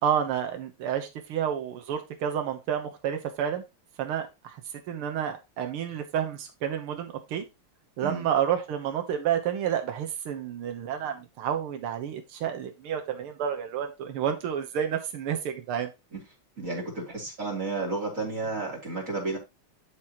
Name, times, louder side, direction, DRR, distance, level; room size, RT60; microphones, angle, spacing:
voice 1, 0.0-3.6 4.0-4.6 4.9-7.5 8.0-15.9, right 9 dB, 85° right, 5 dB, 1.9 m, -30 dB
voice 2, 16.6-19.4, right 3 dB, 35° right, 0 dB, 3.6 m, -32 dB
12.0 x 4.8 x 3.0 m, 0.24 s
omnidirectional pair, 2.3 m